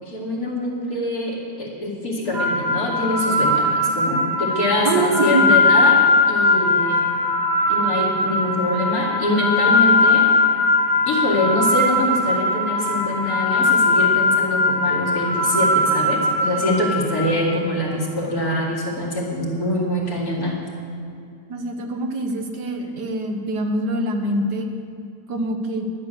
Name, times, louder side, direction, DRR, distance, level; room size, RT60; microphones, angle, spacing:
voice 1, 0.0-6.0 6.3-7.0 7.7-10.3 11.0-20.5, left 1 dB, 65° left, -4 dB, 3.0 m, -24 dB
sound 1, 2.3-17.5, left 2 dB, 60° right, 1.9 m, -20 dB
voice 2, 4.8-5.5 21.5-24.7 25.3-25.9, right 2 dB, 80° right, 5 dB, 1.8 m, -24 dB
12.0 x 10.5 x 6.7 m, 2.5 s
omnidirectional pair, 1.8 m